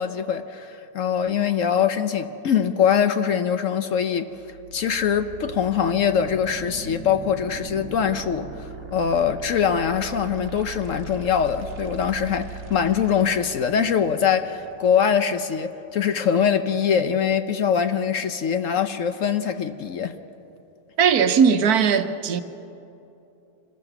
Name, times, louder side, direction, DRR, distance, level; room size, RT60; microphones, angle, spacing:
voice 1, 0.0-4.3 4.7-20.2, left 7 dB, 60° left, 10 dB, 1.0 m, -23 dB
sound 1, 4.3-16.3, right 4 dB, 50° right, 1.4 m, -40 dB
voice 2, 21.0-22.4, right 7 dB, 70° right, 9 dB, 1.3 m, -18 dB
25.5 x 20.0 x 6.0 m, 2.9 s
omnidirectional pair, 1.7 m